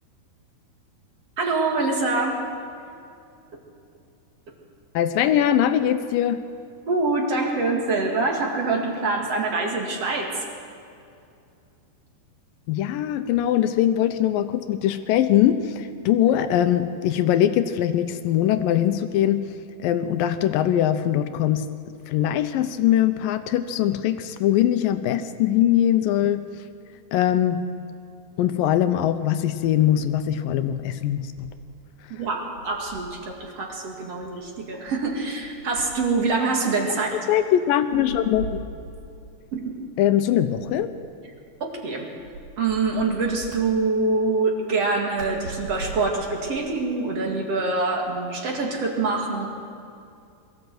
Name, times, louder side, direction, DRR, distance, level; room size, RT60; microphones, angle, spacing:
voice 1, 1.4-2.5 6.9-10.4 32.1-37.2 39.5-39.8 41.6-42.1 42.6-49.5, right 3 dB, 45° right, 1 dB, 2.7 m, -25 dB
voice 2, 4.9-6.4 12.7-19.5 19.8-21.7 22.1-26.5 27.1-27.7 28.4-31.5 37.3-38.6 40.0-40.9, left 11 dB, 75° left, 10 dB, 2.2 m, -22 dB
sound 1, 29.6-31.8 32.1-33.3 34.2-36.4 37.9-39.2 40.6-41.6 42.2-43.6 45.2-46.6, right 3 dB, 65° right, 5.1 m, -41 dB
22.5 x 15.0 x 7.8 m, 2.5 s
omnidirectional pair, 4.4 m